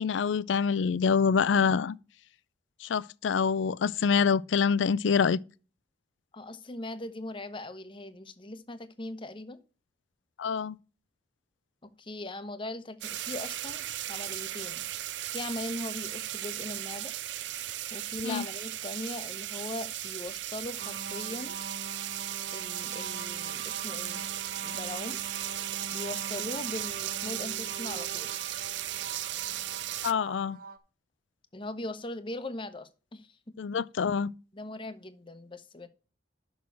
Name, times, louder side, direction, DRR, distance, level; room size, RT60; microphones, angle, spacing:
voice 1, 0.0-2.0 2.8-5.4 10.4-10.8 18.2-18.4 30.0-30.6 33.6-34.3, left 6 dB, 80° left, 0.4 m, -26 dB
voice 2, 6.3-9.6 11.8-14.8 15.3-17.1 17.9-21.6 22.5-24.2 24.6-25.2 25.9-28.3 31.5-33.5 34.5-35.9, left 2 dB, 25° left, 0.9 m, -40 dB
sound 1, 13.0-30.1, right 13 dB, 70° right, 0.5 m, -36 dB
sound 2, 20.8-30.8, right 3 dB, 50° right, 0.9 m, -43 dB
6.3 x 6.2 x 7.0 m
head